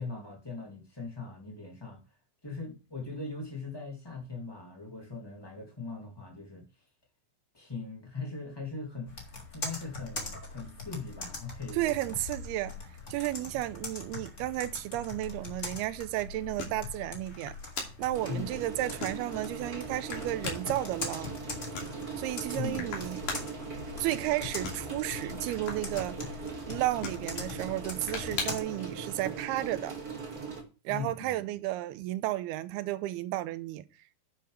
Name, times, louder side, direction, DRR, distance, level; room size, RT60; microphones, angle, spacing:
voice 1, 0.0-2.0 2.4-6.7 7.5-9.2 9.5-12.1 12.8-12.9 13.3-13.6 18.2-18.5 22.5-22.9 30.9-31.6, left 3 dB, 10° left, 1.5 m, -40 dB
Computer keyboard, 9.1-28.6, left 3 dB, 25° left, 1.8 m, -42 dB
voice 2, 11.7-12.8 13.1-17.6 18.0-21.3 22.2-23.2 24.0-26.2 26.7-30.0 30.9-33.8, right 15 dB, 85° right, 2.6 m, -33 dB
sound 1, 12.1-28.8, left 4 dB, 65° left, 4.5 m, -45 dB
sound 2, 18.1-30.6, right 4 dB, 30° right, 1.8 m, -40 dB
10.5 x 7.6 x 3.4 m
omnidirectional pair, 4.5 m